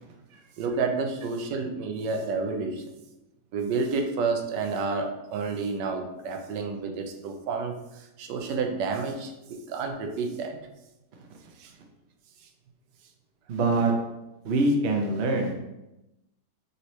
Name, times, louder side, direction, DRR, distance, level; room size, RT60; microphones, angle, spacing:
voice 1, 0.6-2.9 3.5-10.6 11.6-11.7, right 4 dB, 85° right, 4 dB, 1.3 m, -30 dB
voice 2, 13.5-13.9 14.4-15.6, right 2 dB, 55° right, 2 dB, 0.8 m, -24 dB
5.4 x 3.0 x 3.1 m, 0.95 s
omnidirectional pair, 1.9 m